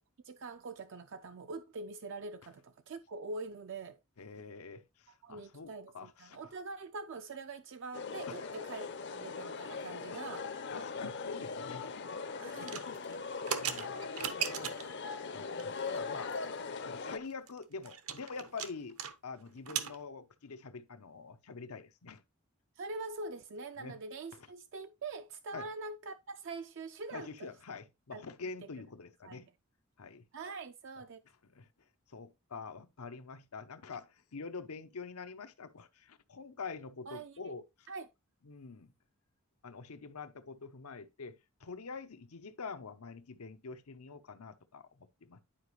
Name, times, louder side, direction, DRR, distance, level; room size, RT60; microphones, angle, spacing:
voice 1, 0.2-4.0 5.2-10.5 12.4-12.7 22.8-27.5 28.1-28.2 29.2-29.4 30.3-31.2 37.1-37.4 37.9-38.1, right 3 dB, 55° right, 0.4 m, -44 dB
voice 2, 4.2-6.5 8.3-8.5 10.7-13.2 13.6-14.2 15.3-16.3 16.9-22.2 23.8-24.0 24.3-24.5 25.5-25.7 27.1-29.5 30.0-30.2 31.5-31.7 32.1-37.9 38.4-38.9 39.6-45.4, left 4 dB, 90° left, 0.8 m, -46 dB
sound 1, 7.9-17.2, left 4 dB, 55° left, 0.6 m, -40 dB
sound 2, 12.6-15.0 15.6-16.0 16.3-16.4 16.7-16.8 17.1-19.1 19.4-20.0, right 8 dB, 80° right, 1.0 m, -38 dB
10.0 x 4.9 x 3.1 m
head